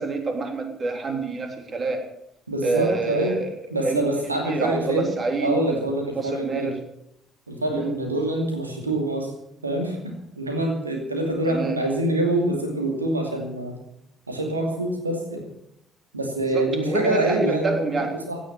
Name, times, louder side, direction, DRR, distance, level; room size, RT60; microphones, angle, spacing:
voice 1, 0.0-2.0 2.6-3.5 3.8-4.1 4.4-5.8 6.2-6.7 7.7-7.9 11.5-11.8 16.5-18.1, right 3 dB, 40° right, 4 dB, 3.4 m, -27 dB
voice 2, 2.5-3.4 3.7-5.1 5.4-6.7 7.5-9.3 9.6-13.8 14.3-15.4 16.1-18.4, right 1 dB, 85° right, 2 dB, 2.6 m, -25 dB
16.5 x 11.0 x 7.3 m, 0.78 s
figure-of-eight pair, 45°, 0 cm